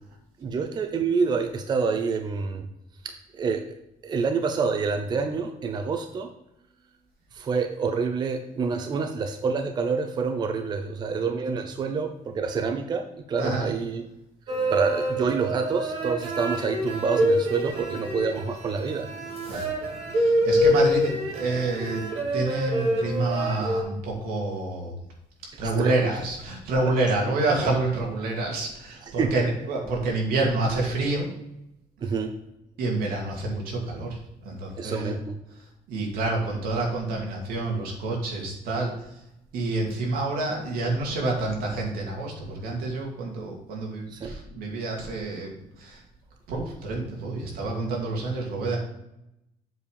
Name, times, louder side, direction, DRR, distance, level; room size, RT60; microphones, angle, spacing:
voice 1, 0.4-2.7 3.0-3.7 4.0-6.3 7.3-14.0 14.7-19.1 23.6-23.7 25.6-26.0 26.8-26.9 29.0-29.3 32.0-32.3 34.8-35.4 44.1-44.3, right 5 dB, 30° right, 6 dB, 0.5 m, -27 dB
sound 1, 14.5-23.8, equal, 45° right, 2.1 m, -26 dB
voice 2, 20.1-22.0 22.3-24.9 25.6-31.3 32.8-35.2 35.9-38.9 39.5-45.5 45.8-46.0 46.5-48.8, right 2 dB, 85° right, -1 dB, 2.4 m, -28 dB
7.6 x 4.8 x 4.9 m, 0.85 s
cardioid pair, 165°, 15 cm